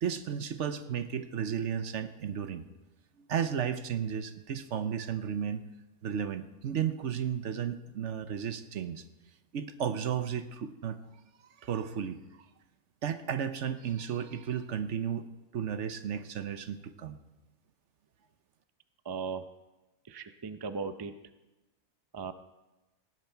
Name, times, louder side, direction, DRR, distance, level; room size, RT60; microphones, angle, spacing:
voice 1, 0.0-2.6 3.2-5.6 6.0-9.0 9.5-11.0 11.6-12.5 13.0-15.3 15.5-17.2, right 8 dB, 60° right, 11 dB, 1.0 m, -33 dB
voice 2, 19.0-19.4 20.0-21.1 22.1-22.3, right 5 dB, 35° right, 10 dB, 0.4 m, -37 dB
17.5 x 11.0 x 4.5 m, 1.0 s
omnidirectional pair, 1.5 m